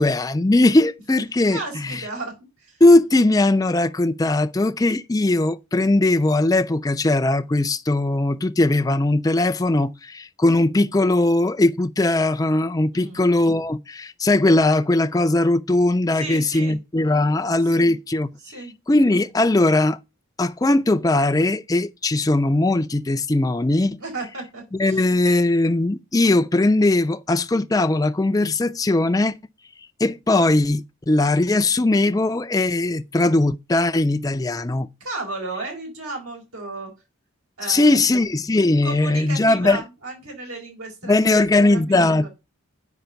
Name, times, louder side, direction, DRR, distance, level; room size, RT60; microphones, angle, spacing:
voice 1, 0.0-2.0 2.8-18.3 18.9-20.0 20.4-24.0 24.8-29.4 30.0-34.9 37.7-39.8 41.0-42.3, left 2 dB, 15° left, 0.4 m, -19 dB
voice 2, 1.5-2.8 12.9-13.2 16.1-16.8 17.6-18.0 18.4-18.7 24.0-25.1 35.0-36.9 37.6-38.1 38.8-42.3, right 3 dB, 90° right, 4.5 m, -34 dB
9.1 x 5.3 x 6.9 m
head